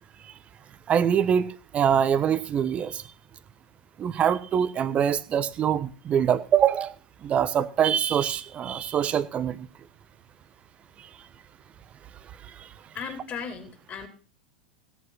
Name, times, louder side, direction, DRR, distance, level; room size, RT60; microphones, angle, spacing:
voice 1, 0.9-3.0 4.0-6.9 7.2-9.7, right 8 dB, 30° right, 14 dB, 1.3 m, -24 dB
voice 2, 12.9-14.1, left 6 dB, 30° left, 3 dB, 4.8 m, -36 dB
17.0 x 8.3 x 6.2 m, 0.39 s
figure-of-eight pair, 90°, 4 cm